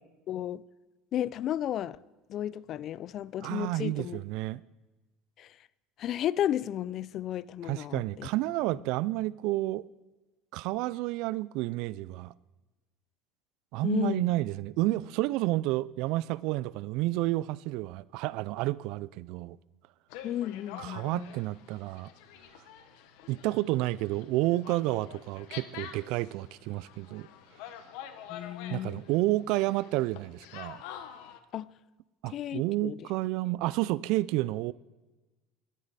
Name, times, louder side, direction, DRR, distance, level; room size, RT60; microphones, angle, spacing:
voice 1, 0.3-0.6 1.1-2.0 2.3-4.2 5.4-5.5 6.0-8.3 13.8-14.2 20.2-21.3 28.3-29.0 31.5-31.7 32.3-33.0, left 11 dB, 50° left, 0.4 m, -33 dB
voice 2, 3.4-4.6 7.6-9.8 10.5-12.3 13.7-19.6 20.8-22.1 23.3-27.3 28.7-30.8 32.2-34.7, right 18 dB, 70° right, 0.3 m, -30 dB
sound 1, 20.1-31.4, left 10 dB, 75° left, 1.1 m, -47 dB
21.5 x 8.3 x 4.1 m
supercardioid pair, 100°, 0 cm